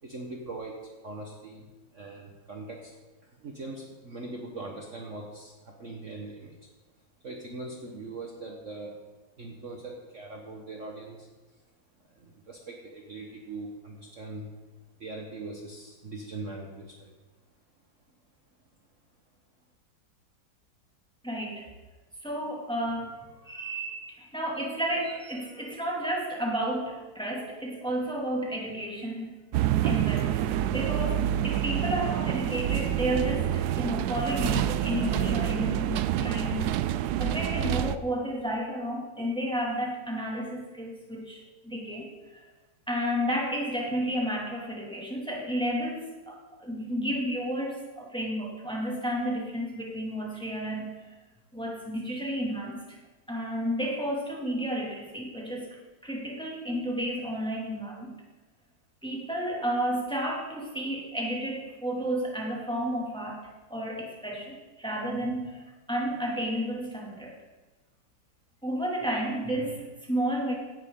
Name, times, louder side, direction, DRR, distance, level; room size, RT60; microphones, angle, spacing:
voice 1, 0.0-3.0 3.2-6.6 7.2-9.0 9.4-11.3 12.2-14.5 15.0-17.1, right 2 dB, 45° right, 0 dB, 1.5 m, -41 dB
voice 2, 21.2-21.7 22.2-29.4 29.8-36.7 37.2-42.4 42.9-50.9 51.5-53.0 53.3-55.8 56.0-58.1 59.0-63.4 63.7-67.3 68.6-70.5, equal, 5° left, -2 dB, 2.2 m, -32 dB
sound 1, 29.5-38.0, right 11 dB, 75° right, 0.9 m, -27 dB
16.5 x 11.5 x 3.8 m, 1.2 s
omnidirectional pair, 2.1 m